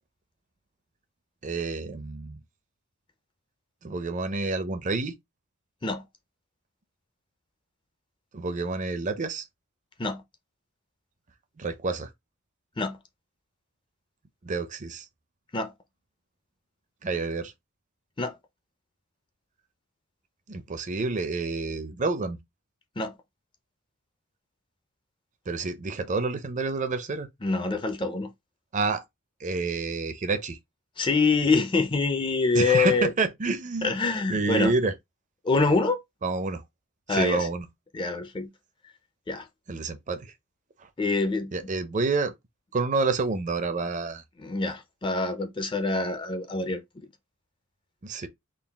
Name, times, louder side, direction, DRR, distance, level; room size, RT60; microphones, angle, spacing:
voice 1, 1.4-2.4 3.8-5.1 8.3-9.5 11.6-12.1 14.4-15.1 17.0-17.5 20.5-22.4 25.5-27.3 28.7-29.0 29.4-30.6 32.5-34.0 34.3-34.9 36.2-36.6 37.1-37.7 39.7-40.3 40.8-40.9 41.5-42.3 42.7-44.2 48.0-48.3, right 3 dB, 35° right, 0.5 m, -28 dB
voice 2, 27.4-28.3 31.0-33.1 33.8-34.7 35.4-36.0 37.1-37.5 37.9-38.5 39.3-39.5 41.0-41.5 44.4-47.1, left 3 dB, 20° left, 0.5 m, -25 dB
3.8 x 2.4 x 3.4 m
head